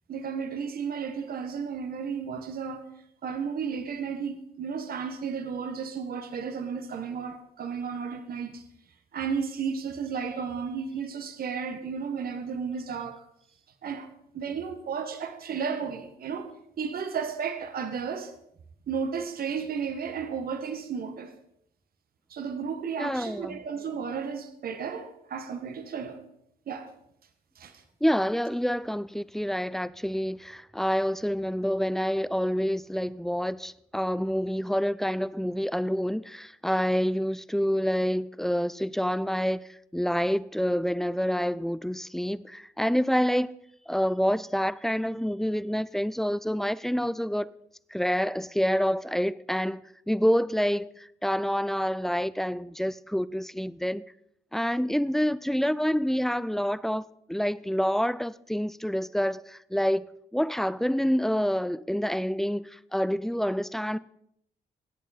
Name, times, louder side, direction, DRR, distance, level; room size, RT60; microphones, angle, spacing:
voice 1, 0.1-2.9 3.2-8.6 9.1-13.2 13.8-14.1 14.3-16.5 16.8-18.3 18.9-21.3 22.3-26.2 26.7-26.9 27.6-27.8, right 6 dB, 60° right, 1.3 m, -33 dB
voice 2, 23.0-23.6 28.0-43.6 43.9-47.5 47.9-54.0 54.5-64.0, equal, ahead, 0.5 m, -27 dB
17.5 x 8.3 x 4.1 m
supercardioid pair, 55°, 17 cm